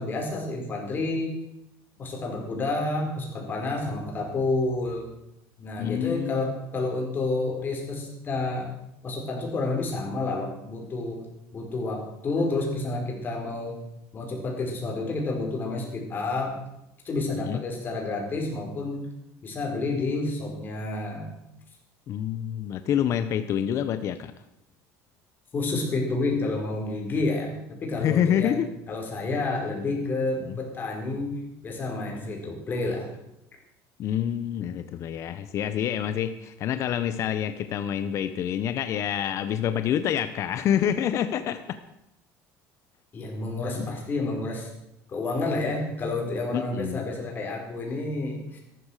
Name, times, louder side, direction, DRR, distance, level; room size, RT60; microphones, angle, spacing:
voice 1, 0.0-1.4 2.0-5.1 5.6-8.7 9.0-11.2 11.5-13.7 14.1-16.6 17.0-19.1 19.4-21.3 25.5-28.6 28.9-33.1 43.1-44.7 45.1-48.6, left 2 dB, 30° left, 1 dB, 5.3 m, -29 dB
voice 2, 5.8-6.5 17.5-17.6 22.1-24.3 27.9-28.7 34.0-41.6 43.9-44.0 46.5-47.0, left 9 dB, 50° left, 10 dB, 0.9 m, -27 dB
14.0 x 12.5 x 6.6 m, 0.86 s
cardioid pair, 130°, 7 cm